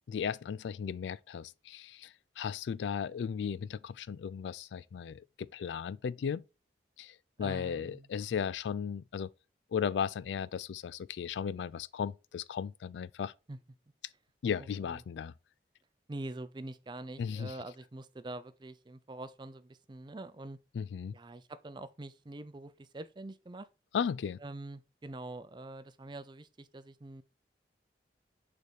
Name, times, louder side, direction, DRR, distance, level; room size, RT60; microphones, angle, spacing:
voice 1, 0.1-6.4 7.0-9.3 9.7-13.3 14.4-15.3 17.2-17.5 20.7-21.2 23.9-24.4, left 7 dB, 85° left, 0.3 m, -36 dB
voice 2, 7.4-8.1 13.5-13.6 14.6-15.0 16.1-20.6 21.1-23.7 24.4-27.2, right 2 dB, 25° right, 0.4 m, -45 dB
6.6 x 3.5 x 4.6 m
head